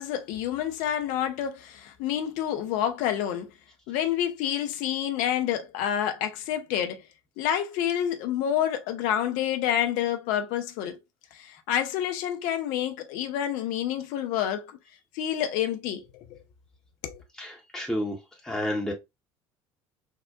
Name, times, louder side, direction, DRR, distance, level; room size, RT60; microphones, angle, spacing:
voice 1, 0.0-3.5 3.9-7.0 7.4-11.0 11.3-14.7 15.1-16.4 17.0-17.2, left 10 dB, 60° left, 0.5 m, -28 dB
voice 2, 17.4-18.2 18.4-18.9, left 1 dB, 5° left, 0.7 m, -30 dB
3.5 x 2.1 x 2.3 m
figure-of-eight pair, 60°, 15 cm